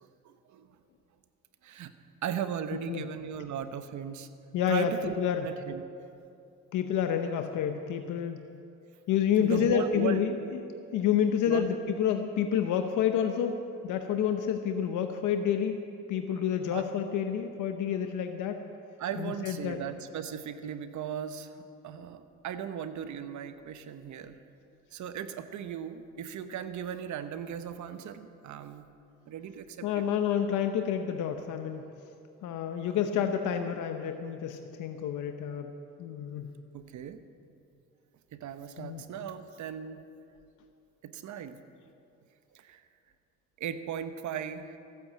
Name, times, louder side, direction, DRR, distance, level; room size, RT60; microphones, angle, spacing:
voice 1, 0.0-0.7 1.6-1.9 2.2-4.3 4.7-5.2 5.4-5.8 9.4-10.2 11.5-11.7 16.7-16.9 19.0-24.4 24.9-28.9 29.3-30.0 36.7-37.2 38.3-40.0 41.0-41.6 42.5-42.8 43.6-44.8, right 8 dB, 70° right, 10 dB, 1.0 m, -37 dB
voice 2, 4.5-5.5 6.7-8.4 9.1-15.8 16.1-18.6 19.2-19.8 29.8-31.9 32.4-35.7 36.0-36.5 38.8-39.0, left 8 dB, 85° left, 6 dB, 0.8 m, -29 dB
15.0 x 9.2 x 7.4 m, 2.5 s
cardioid pair, 90°, 30 cm